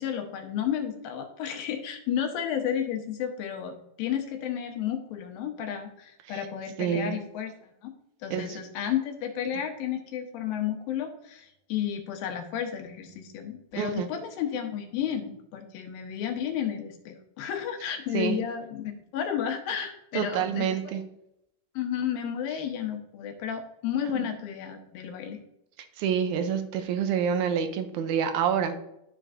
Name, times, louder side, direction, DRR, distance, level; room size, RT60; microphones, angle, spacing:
voice 1, 0.0-7.9 8.2-20.7 21.8-25.4, left 9 dB, 80° left, 4 dB, 2.7 m, -32 dB
voice 2, 6.8-7.2 8.3-8.6 13.8-14.1 18.1-18.4 20.1-21.0 24.1-24.3 26.0-28.8, right 8 dB, 80° right, 7 dB, 1.7 m, -27 dB
12.5 x 4.5 x 2.6 m, 0.80 s
omnidirectional pair, 4.1 m